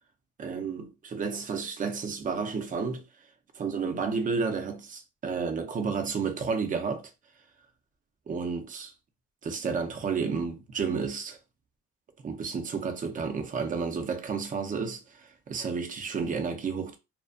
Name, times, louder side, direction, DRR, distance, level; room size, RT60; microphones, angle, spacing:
voice 1, 0.4-3.0 3.5-7.1 8.3-8.9 9.4-11.4 12.2-17.0, right 5 dB, 25° right, 0.5 m, -31 dB
2.5 x 2.1 x 2.4 m
cardioid pair, 120°, 30 cm